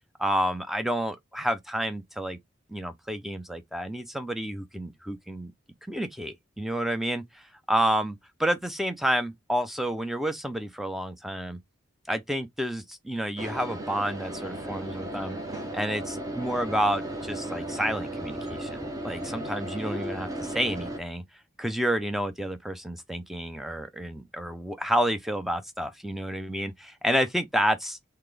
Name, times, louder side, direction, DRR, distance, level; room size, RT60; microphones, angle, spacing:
voice 1, 0.2-2.4 2.7-5.5 5.9-11.6 12.1-15.4 15.7-21.2 21.6-28.0, equal, ahead, 0.5 m, -30 dB
sound 1, 13.4-21.0, right 1 dB, 15° right, 0.9 m, -35 dB
4.0 x 3.2 x 3.3 m
head